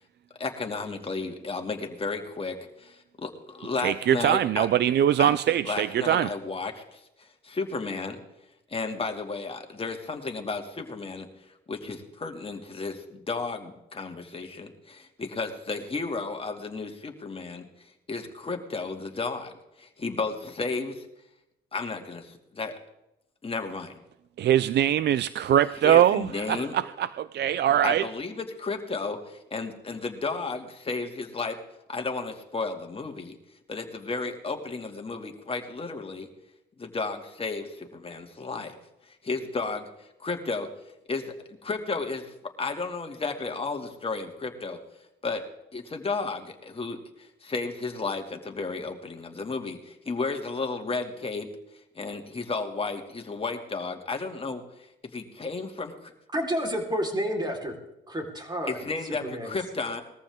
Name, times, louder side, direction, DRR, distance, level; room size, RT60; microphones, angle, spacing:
voice 1, 0.4-4.7 5.2-5.3 5.6-8.2 8.7-11.3 11.7-21.1 21.7-22.7 23.4-24.0 25.8-26.8 27.8-31.6 31.9-33.4 33.7-36.3 36.8-38.8 39.0-40.7 41.1-41.3 41.6-44.8 45.2-45.4 45.7-51.5 51.9-56.1 58.7-60.0, left 3 dB, 30° left, 4 dB, 2.5 m, -33 dB
voice 2, 3.8-6.3 24.4-28.1, right 10 dB, 60° right, 16 dB, 0.5 m, -22 dB
voice 3, 56.3-57.7 58.1-58.8 59.2-59.6, equal, 20° right, 2 dB, 4.2 m, -30 dB
21.0 x 14.5 x 3.7 m, 0.89 s
cardioid pair, 90°, 20 cm